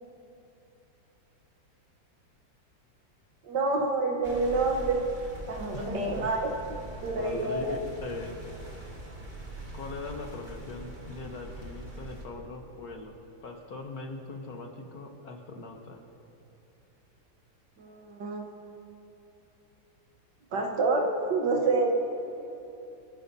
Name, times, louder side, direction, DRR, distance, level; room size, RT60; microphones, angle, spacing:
voice 1, 3.4-5.1 5.5-6.5 7.0-7.8 17.8-18.5 20.5-21.9, right 3 dB, 65° right, 2 dB, 1.7 m, -27 dB
sound 1, 4.2-12.2, right 2 dB, 25° right, 1.5 m, -43 dB
voice 2, 5.7-6.3 7.2-8.4 9.7-16.0, left 3 dB, 55° left, 3 dB, 1.4 m, -41 dB
30.0 x 10.0 x 2.7 m, 3.0 s
omnidirectional pair, 2.1 m